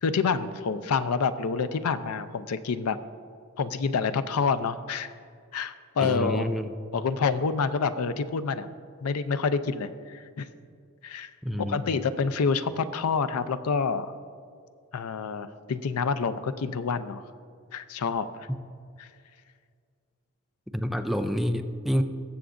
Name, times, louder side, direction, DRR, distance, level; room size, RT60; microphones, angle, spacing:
voice 1, 0.0-3.0 3.6-5.1 5.5-6.5 6.9-8.7 9.0-10.5 11.0-11.3 11.6-14.1 14.9-17.2 17.7-18.5 19.0-19.1, left 5 dB, 90° left, 12 dB, 0.5 m, -28 dB
voice 2, 6.0-6.7 11.4-11.8 18.5-18.6 20.7-22.0, equal, ahead, 6 dB, 0.4 m, -28 dB
20.5 x 7.0 x 2.5 m, 2.2 s
head